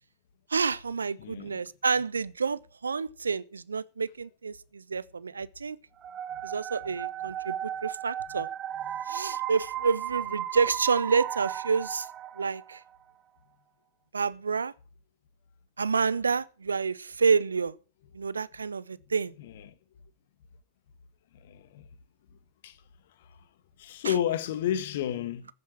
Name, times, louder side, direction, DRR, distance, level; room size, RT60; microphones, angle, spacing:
voice 1, 0.5-5.8 6.4-8.5 9.1-12.1 12.4-12.8 14.1-14.7 15.8-17.7 18.1-19.3 24.0-24.1, right 5 dB, 75° right, 0.5 m, -29 dB
voice 2, 1.2-1.6 8.9-9.0 19.4-19.7 21.5-21.8 22.6-22.8 23.8-25.5, left 10 dB, 55° left, 1.4 m, -31 dB
sound 1, 6.0-12.8, right 10 dB, 30° right, 0.8 m, -35 dB
14.5 x 8.4 x 6.0 m
figure-of-eight pair, 90°, 0 cm